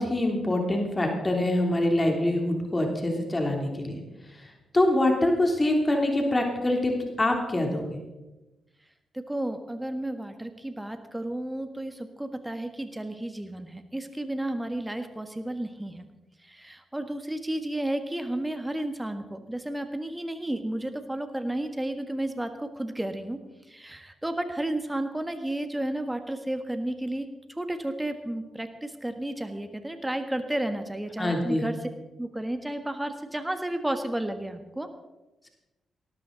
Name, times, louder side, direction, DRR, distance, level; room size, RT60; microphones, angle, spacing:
voice 1, 0.0-4.0 4.3-6.9 7.2-8.0 31.2-31.6, left 1 dB, 25° left, 2 dB, 3.3 m, -25 dB
voice 2, 9.1-16.1 16.4-23.4 23.7-31.8 32.2-34.9, right 1 dB, 15° right, 8 dB, 1.5 m, -32 dB
18.0 x 13.5 x 4.0 m, 1.1 s
hypercardioid pair, 40°, 0 cm